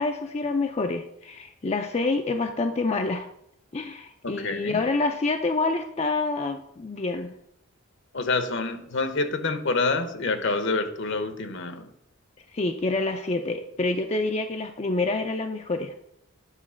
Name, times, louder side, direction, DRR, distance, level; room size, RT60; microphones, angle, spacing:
voice 1, 0.0-3.3 3.7-7.3 12.5-15.9, left 3 dB, 30° left, 5 dB, 0.5 m, -27 dB
voice 2, 4.2-4.8 8.1-11.9, left 3 dB, 60° left, 9 dB, 0.9 m, -27 dB
9.9 x 4.0 x 6.2 m, 0.75 s
head